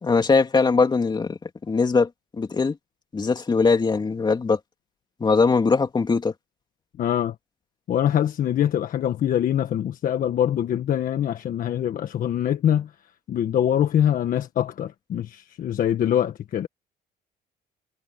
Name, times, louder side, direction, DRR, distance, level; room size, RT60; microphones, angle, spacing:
voice 1, 0.0-2.1 2.4-2.8 3.1-4.6 5.2-6.3, left 4 dB, 25° left, 3.1 m, -21 dB
voice 2, 7.0-7.3 7.9-12.9 13.3-16.7, left 10 dB, 55° left, 1.4 m, -24 dB
cardioid pair, 110°, 17 cm